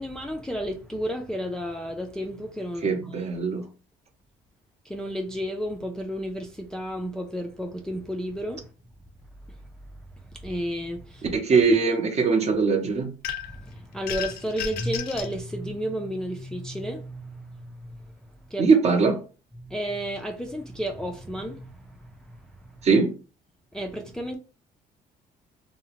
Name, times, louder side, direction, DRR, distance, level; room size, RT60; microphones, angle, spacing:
voice 1, 0.0-3.3 4.8-8.7 9.5-9.6 10.3-11.3 13.4-18.0 18.5-18.7 19.6-22.8 23.7-24.4, equal, 5° left, 0.3 m, -32 dB
voice 2, 2.8-3.6 11.3-13.1 18.6-19.2 22.8-23.1, right 4 dB, 40° right, 0.6 m, -21 dB
sound 1, 13.2-13.6 14.1-15.3, left 9 dB, 70° left, 0.4 m, -33 dB
2.7 x 2.0 x 2.8 m
cardioid pair, 110°, 17 cm